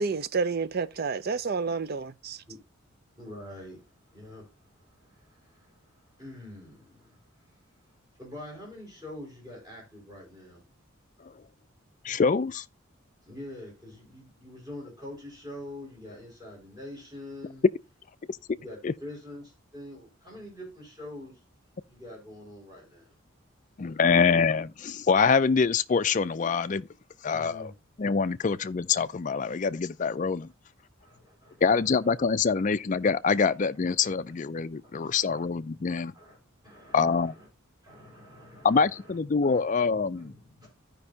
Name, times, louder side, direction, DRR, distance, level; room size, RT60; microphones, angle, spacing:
voice 1, 0.0-2.4, right 4 dB, 45° right, 0.5 m, -29 dB
voice 2, 3.2-3.9 4.1-7.6 8.2-10.7 13.2-17.7 18.5-21.4 21.9-23.2 27.3-27.7 31.0-32.0 34.8-34.9 35.2-35.4 36.1-36.4 36.6-37.5 37.8-40.7, left 1 dB, 20° right, 5.2 m, -45 dB
voice 3, 12.0-12.6 18.8-18.9 23.8-26.9 27.2-27.6 28.0-30.5 31.6-36.1 36.9-37.3 38.6-40.3, left 5 dB, 35° left, 0.4 m, -25 dB
15.0 x 5.3 x 2.7 m
head